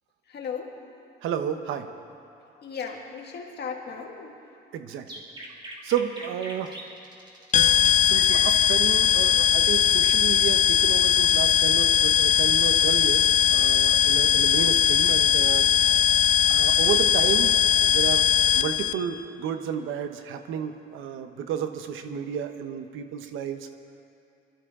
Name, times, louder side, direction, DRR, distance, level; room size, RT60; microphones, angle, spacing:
voice 1, 0.3-0.8 2.5-4.6 11.2-11.3 12.2-12.4 14.3-14.5, left 6 dB, 60° left, 1 dB, 2.0 m, -37 dB
voice 2, 1.2-1.9 4.7-5.1 5.8-6.8 8.0-15.7 16.5-17.6 17.9-18.3 18.5-23.7, right 9 dB, 90° right, 8 dB, 0.9 m, -31 dB
sound 1, 5.1-8.6, right 1 dB, 25° right, 2.4 m, -41 dB
sound 2, 7.5-18.9, left 9 dB, 40° left, 0.4 m, -20 dB
22.5 x 13.0 x 3.7 m, 2.6 s
cardioid pair, 90°, 20 cm